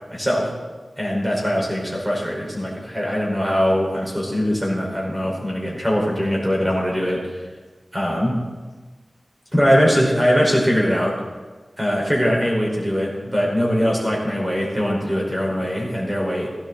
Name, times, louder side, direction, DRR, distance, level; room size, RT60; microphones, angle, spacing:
voice 1, 0.1-0.5 1.0-7.4 7.9-8.3 9.5-11.2 11.8-16.5, equal, 15° right, -3 dB, 5.5 m, -21 dB
16.0 x 12.5 x 4.4 m, 1.3 s
cardioid pair, 50°, 0 cm